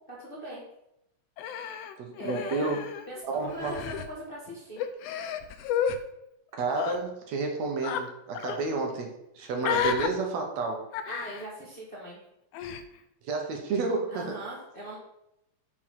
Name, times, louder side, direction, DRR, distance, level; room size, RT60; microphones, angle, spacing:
voice 1, 0.1-0.6 1.6-2.7 3.1-4.8 11.1-12.2 14.1-15.0, right 1 dB, 25° left, -7 dB, 1.3 m, -40 dB
Human voice, 1.4-3.2 3.5-4.1 4.8-6.0 6.7-7.0 7.8-8.0 8.3-8.6 9.6-10.1 10.9-11.5 12.5-12.8, left 8 dB, 80° left, 1.4 m, -31 dB
voice 2, 2.0-2.8 3.2-3.8 6.6-10.9 13.2-14.4, right 3 dB, 70° right, 2 dB, 2.1 m, -31 dB
5.6 x 4.7 x 5.8 m, 0.83 s
omnidirectional pair, 3.3 m